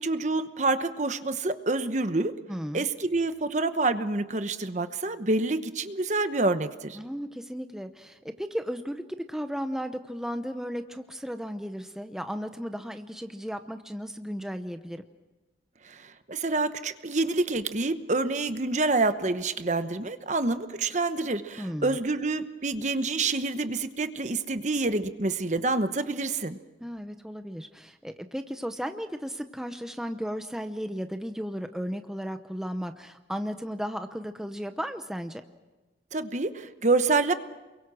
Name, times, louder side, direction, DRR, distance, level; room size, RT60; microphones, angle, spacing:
voice 1, 0.0-2.3 2.7-7.0 15.8-26.6 36.1-37.3, right 3 dB, 40° right, 10 dB, 1.0 m, -27 dB
voice 2, 2.5-2.9 6.9-9.0 9.3-15.0 21.6-22.0 26.8-35.4, equal, 5° right, 7 dB, 0.8 m, -35 dB
28.5 x 23.0 x 6.3 m, 1.2 s
head